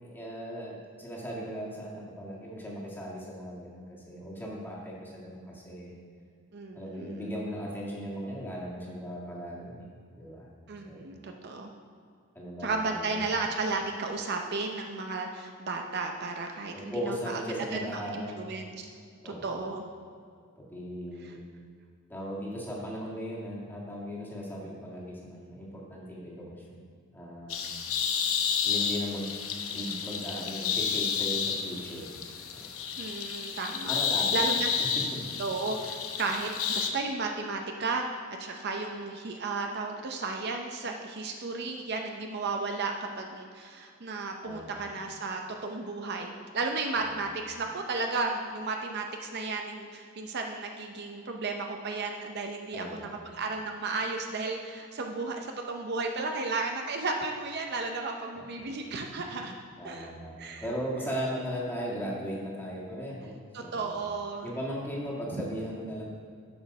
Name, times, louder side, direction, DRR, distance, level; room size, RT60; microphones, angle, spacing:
voice 1, 0.0-5.9 6.7-9.8 10.1-10.5 10.8-11.0 12.3-13.2 16.7-18.5 19.2-19.4 20.5-21.4 22.1-26.8 27.1-27.7 28.6-29.3 29.7-32.2 32.5-32.7 33.9-34.5 34.9-35.3 44.4-44.8 47.0-47.1 52.7-53.1 58.4-58.7 59.8-63.9 64.4-66.0, equal, 10° left, -5 dB, 1.7 m, -37 dB
voice 2, 6.5-7.3 10.7-11.7 12.6-17.4 17.7-18.6 19.2-19.8 21.2-21.4 33.0-34.0 34.3-34.7 35.4-38.0 38.4-59.5 59.8-60.1 60.4-60.6 63.5-64.5 65.3-65.5, right 3 dB, 50° right, 3 dB, 0.6 m, -34 dB
sound 1, 27.5-36.9, left 7 dB, 80° left, 0.8 m, -31 dB
7.8 x 6.2 x 5.3 m, 2.2 s
head